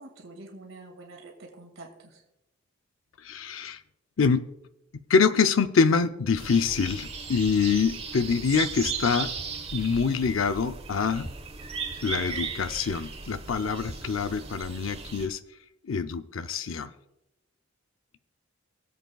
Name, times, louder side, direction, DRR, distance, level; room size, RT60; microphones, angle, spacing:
voice 1, 0.0-2.2, right 2 dB, 90° right, 0 dB, 2.2 m, -46 dB
voice 2, 3.2-3.8 4.2-4.4 5.1-9.3 9.7-11.3 12.0-15.4 15.8-16.9, left 5 dB, 85° left, 10 dB, 0.6 m, -25 dB
sound 1, 6.4-15.3, right 5 dB, 30° right, 1.2 m, -36 dB
23.5 x 8.1 x 2.3 m, 0.87 s
head